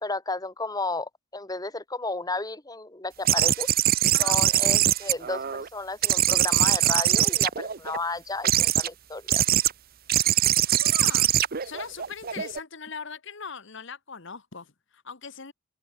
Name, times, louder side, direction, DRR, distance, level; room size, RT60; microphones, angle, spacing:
voice 1, 0.0-3.7 4.2-9.4, left 3 dB, 20° left, 1.6 m, -33 dB
sound 1, 3.2-5.7 6.0-8.0 8.4-8.9 9.3-9.7 10.1-12.6, right 12 dB, 45° right, 0.7 m, -22 dB
voice 2, 10.7-11.3 11.6-15.5, left 5 dB, 60° left, 1.4 m, -40 dB
open air
head